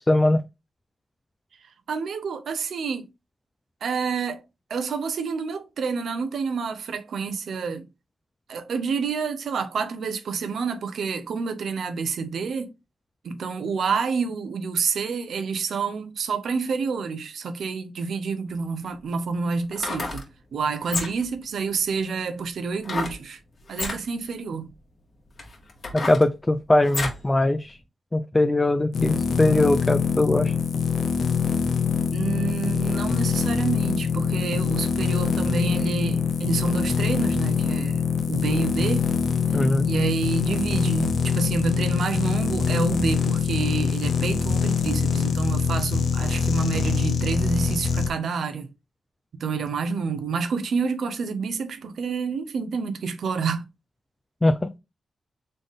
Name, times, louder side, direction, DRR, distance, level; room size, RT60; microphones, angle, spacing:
voice 1, 0.1-0.4 25.9-27.8 28.1-30.5 39.5-39.9 54.4-54.7, left 1 dB, 20° left, 0.4 m, -21 dB
voice 2, 1.9-3.1 3.8-4.4 4.7-7.9 8.5-12.7 13.2-20.2 20.5-23.4 23.7-24.7 32.1-38.0 38.3-39.1 39.8-48.7 49.4-53.6, right 5 dB, 80° right, 0.7 m, -28 dB
sound 1, 18.5-18.6 19.6-20.3 20.8-21.4 22.8-23.2 23.7-24.0 24.7-24.8 25.4-27.3 27.7-27.8, left 3 dB, 45° left, 1.7 m, -31 dB
sound 2, 28.9-48.1, left 6 dB, 80° left, 0.7 m, -24 dB
3.9 x 3.6 x 3.5 m
cardioid pair, 95°, 0 cm